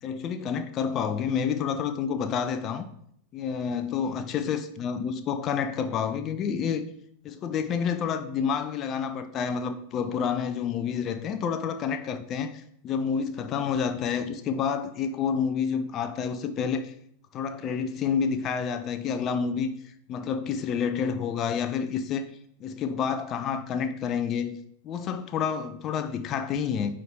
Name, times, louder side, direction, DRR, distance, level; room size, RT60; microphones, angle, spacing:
voice 1, 0.0-2.9 3.3-6.8 7.2-16.9 17.3-22.3 22.6-24.6 24.8-27.0, left 7 dB, 30° left, 9 dB, 0.5 m, -29 dB
9.1 x 3.7 x 3.8 m, 0.71 s
figure-of-eight pair, 90°, 0 cm